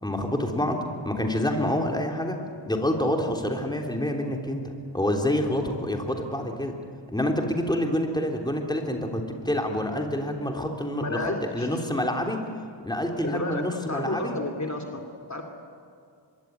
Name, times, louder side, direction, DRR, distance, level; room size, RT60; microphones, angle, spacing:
voice 1, 0.0-0.8 1.0-2.4 2.7-4.6 4.9-6.7 7.1-12.4 12.8-14.4, left 1 dB, 10° left, 2 dB, 3.4 m, -27 dB
voice 2, 11.0-11.7 13.2-15.4, left 2 dB, 35° left, 3 dB, 2.7 m, -32 dB
25.5 x 22.0 x 9.4 m, 2.3 s
wide cardioid pair, 85°, 45 cm